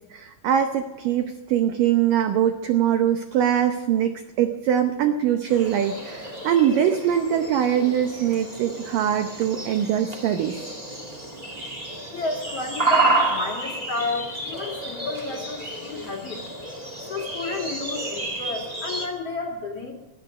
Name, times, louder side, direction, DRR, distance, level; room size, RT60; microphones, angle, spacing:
voice 1, 0.1-10.6, right 10 dB, 75° right, 7 dB, 2.0 m, -22 dB
sound 1, 5.5-19.1, right 2 dB, 35° right, 0.6 m, -30 dB
voice 2, 12.1-16.5 17.0-19.9, left 3 dB, 45° left, 0 dB, 2.4 m, -31 dB
19.0 x 11.5 x 6.4 m, 1.1 s
omnidirectional pair, 5.0 m